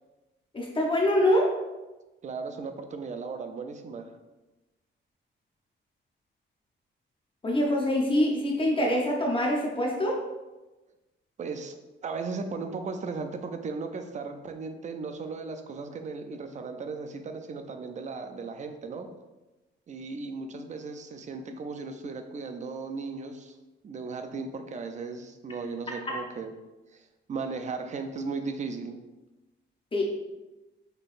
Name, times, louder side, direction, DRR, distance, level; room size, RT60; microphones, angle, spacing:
voice 1, 0.5-1.5 7.4-10.2 29.9-30.0, left 1 dB, 25° left, -1 dB, 0.7 m, -24 dB
voice 2, 2.2-4.2 11.4-19.1 19.9-23.6 23.8-26.5 26.9-29.0, right 4 dB, 35° right, 7 dB, 0.4 m, -36 dB
5.4 x 3.8 x 2.5 m, 1.1 s
wide cardioid pair, 155°, 21 cm